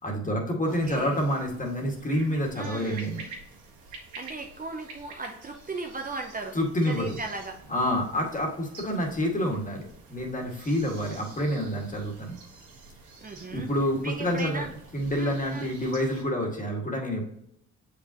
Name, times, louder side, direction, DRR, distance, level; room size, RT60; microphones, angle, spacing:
voice 1, 0.0-3.2 6.5-7.2 7.7-9.8 10.1-12.4 13.5-14.7 14.9-17.3, equal, 25° left, 0 dB, 2.1 m, -28 dB
voice 2, 0.7-1.2 2.6-3.1 4.0-6.6 6.9-7.6 13.2-13.7 14.0-14.7 15.1-15.7, right 3 dB, 30° right, 3 dB, 0.8 m, -37 dB
sound 1, 0.7-16.2, right 3 dB, 85° right, 1.8 m, -48 dB
7.2 x 5.2 x 3.0 m, 0.75 s
cardioid pair, 90°, 30 cm